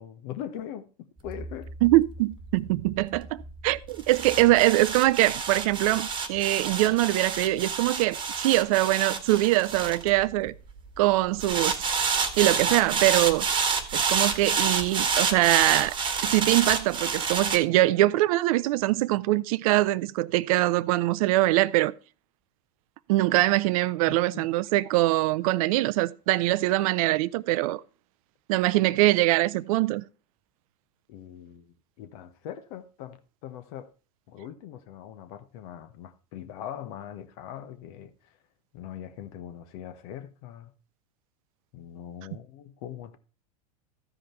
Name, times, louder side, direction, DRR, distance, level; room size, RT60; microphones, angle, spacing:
voice 1, 0.0-1.7 24.1-24.5 31.1-33.9 34.3-38.4 38.7-40.7 41.7-43.2, left 10 dB, 60° left, 1.2 m, -41 dB
sound 1, 1.3-10.7 11.4-17.6, right 5 dB, 25° right, 1.5 m, -28 dB
voice 2, 1.8-10.5 11.0-11.8 12.4-13.5 13.9-16.0 16.2-21.9 23.1-27.8 28.5-30.0, right 17 dB, 60° right, 0.5 m, -23 dB
13.5 x 5.1 x 4.5 m
hypercardioid pair, 90°, 20 cm